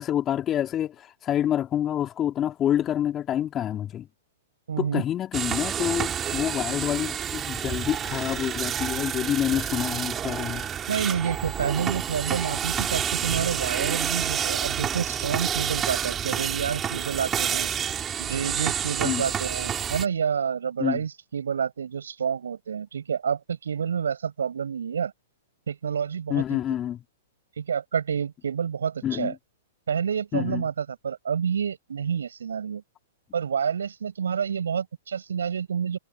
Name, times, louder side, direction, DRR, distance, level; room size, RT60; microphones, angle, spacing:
voice 1, 0.0-4.1 4.8-10.7 19.0-19.3 20.8-21.0 26.3-27.0 29.0-29.3 30.3-30.6, left 10 dB, 25° left, 3.5 m, -27 dB
voice 2, 4.7-5.0 10.9-17.7 18.2-25.1 25.7-26.6 27.6-29.3 29.9-32.8 33.3-36.0, right 7 dB, 70° right, 5.7 m, -29 dB
sound 1, 5.3-20.0, right 9 dB, 20° right, 3.9 m, -29 dB
figure-of-eight pair, 110°, 0 cm